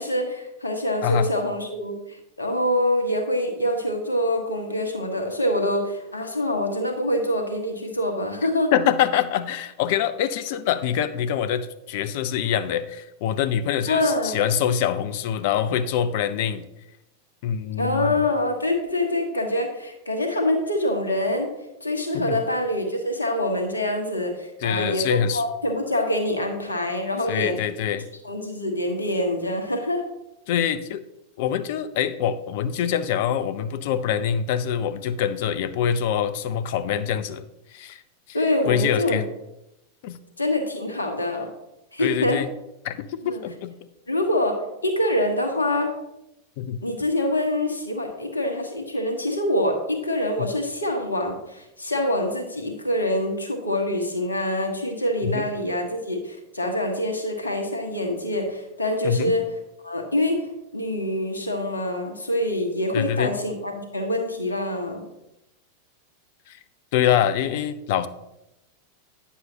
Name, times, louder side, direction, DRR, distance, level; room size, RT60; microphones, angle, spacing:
voice 1, 0.0-8.7 13.9-14.4 17.8-21.5 21.8-27.6 28.2-30.0 38.3-39.2 40.4-41.5 41.9-42.4 43.2-43.4 44.1-45.9 46.8-59.5 59.8-65.1, left 1 dB, 75° left, 4 dB, 1.3 m, -25 dB
voice 2, 8.7-16.7 17.4-18.1 22.1-22.4 24.6-25.4 27.3-28.1 30.5-31.0 31.4-37.4 37.7-38.0 38.3-38.4 38.7-39.2 40.0-40.2 42.0-42.5 42.8-43.7 46.6-46.8 55.2-55.5 59.0-59.4 62.9-63.3 66.5-66.6 66.9-68.1, left 9 dB, 50° left, 13 dB, 0.5 m, -24 dB
9.3 x 7.0 x 2.9 m, 0.89 s
figure-of-eight pair, 90°, 0 cm